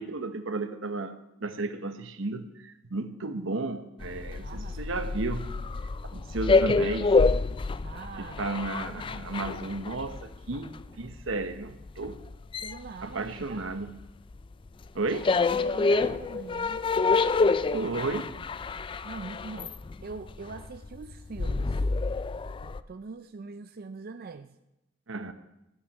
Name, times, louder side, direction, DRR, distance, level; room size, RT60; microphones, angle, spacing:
voice 1, 0.0-5.5 6.1-7.1 8.2-12.2 13.0-14.0 14.9-15.3 17.7-18.3 25.1-25.3, right 3 dB, 75° right, 10 dB, 0.9 m, -33 dB
sound 1, 4.0-14.0 14.3-22.8, left 4 dB, 25° left, 0.3 m, -28 dB
voice 2, 4.4-4.9 7.8-8.5 12.6-13.7 15.6-16.8 17.7-17.9 18.2-18.4 19.0-21.9 22.3-24.6, right 4 dB, 50° right, 9 dB, 0.4 m, -43 dB
14.0 x 6.4 x 7.2 m, 0.91 s
head